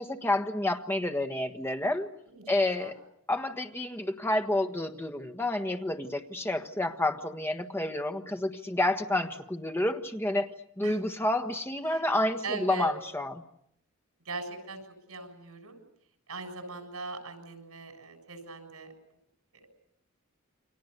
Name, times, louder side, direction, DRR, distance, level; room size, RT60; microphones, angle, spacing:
voice 1, 0.0-2.1 2.5-3.0 3.3-10.5 10.8-13.4, left 1 dB, 10° left, 6 dB, 1.4 m, -29 dB
voice 2, 12.4-12.9 14.3-14.8 15.1-15.8 16.3-18.9 19.5-19.7, right 3 dB, 80° right, 6 dB, 7.3 m, -40 dB
29.5 x 25.0 x 6.8 m, 0.75 s
head